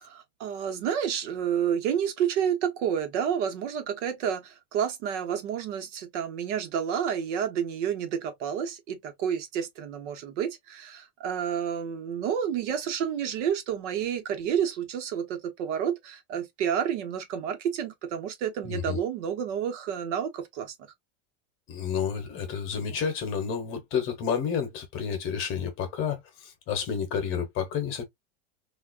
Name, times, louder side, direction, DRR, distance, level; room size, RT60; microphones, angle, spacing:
voice 1, 0.0-20.7, right 8 dB, 75° right, 1.1 m, -30 dB
voice 2, 18.6-19.0 21.7-28.0, left 7 dB, 35° left, 1.0 m, -30 dB
3.5 x 2.5 x 2.4 m
supercardioid pair, 175°, 36 cm